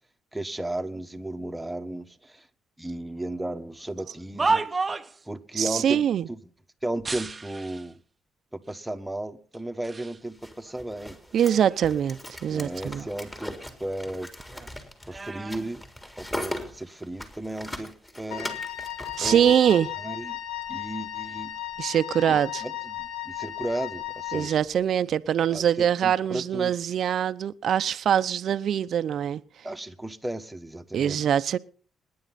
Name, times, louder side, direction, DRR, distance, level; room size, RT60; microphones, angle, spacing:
voice 1, 0.3-2.5 2.8-4.8 5.3-6.4 6.8-8.0 8.5-11.2 12.5-14.3 15.1-15.8 16.2-18.6 19.2-19.5 20.0-20.4 20.7-21.5 22.3-24.6 25.5-26.7 29.6-31.2, right 1 dB, 5° right, 6 dB, 1.5 m, -34 dB
sound 1, 4.0-5.3 7.0-7.9 8.7-8.8 9.5-10.2 10.6-12.1 12.5-14.1 14.4-16.5 17.3-17.6, right 3 dB, 25° right, 0.9 m, -33 dB
voice 2, 5.6-6.3 11.3-13.1 19.2-19.9 21.8-22.6 24.3-29.4 30.9-31.6, right 9 dB, 65° right, 14 dB, 0.8 m, -23 dB
sound 2, 10.3-19.8, left 1 dB, 15° left, 3.7 m, -39 dB
Wind instrument woodwind instrument, 18.3-24.7, left 13 dB, 85° left, 1.5 m, -35 dB
25.0 x 10.5 x 4.2 m, 0.43 s
cardioid pair, 90°, 0 cm